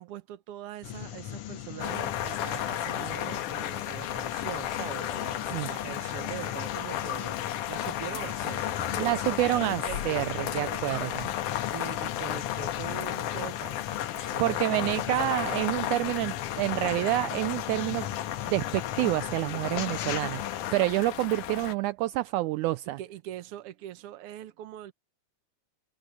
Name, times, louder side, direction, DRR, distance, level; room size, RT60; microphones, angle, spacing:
voice 1, 0.0-7.4 7.7-13.8 14.1-15.1 19.4-19.7 23.0-24.9, right 12 dB, 60° right, 1.8 m, -42 dB
sound 1, 0.8-20.7, left 12 dB, 65° left, 1.5 m, -40 dB
sound 2, 1.8-21.7, left 12 dB, 85° left, 2.6 m, -34 dB
voice 2, 9.0-11.3 14.4-18.1 18.5-20.4 20.7-23.0, right 18 dB, 80° right, 1.9 m, -28 dB
omnidirectional pair, 3.6 m